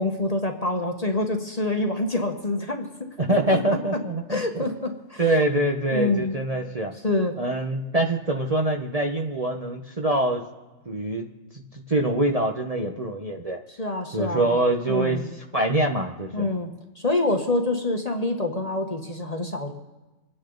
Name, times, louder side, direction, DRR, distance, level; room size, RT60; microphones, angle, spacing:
voice 1, 0.0-2.9 3.5-3.6 4.3-5.2 5.9-6.4 7.0-7.4 13.8-14.6 14.9-15.2 16.3-19.7, left 2 dB, 30° left, 3 dB, 1.2 m, -26 dB
voice 2, 3.2-4.7 5.2-6.9 7.4-10.4 10.9-11.3 11.5-11.6 11.9-13.6 14.1-16.5, right 1 dB, 30° right, 1 dB, 1.0 m, -24 dB
25.5 x 10.0 x 3.9 m, 1.1 s
omnidirectional pair, 1.5 m